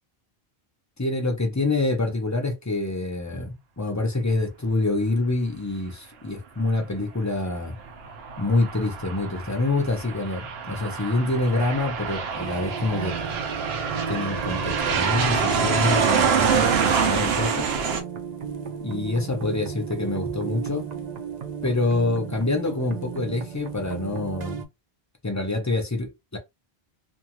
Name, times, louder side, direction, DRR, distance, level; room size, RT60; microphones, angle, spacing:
voice 1, 1.0-7.8 8.4-13.2 14.1-17.7 18.8-20.9 21.6-24.6 25.2-26.4, left 2 dB, 20° left, 0.6 m, -26 dB
Aircraft, 7.8-18.0, right 6 dB, 80° right, 0.9 m, -26 dB
sound 1, 12.4-24.6, right 7 dB, 50° right, 0.6 m, -34 dB
2.6 x 2.3 x 2.9 m
omnidirectional pair, 1.1 m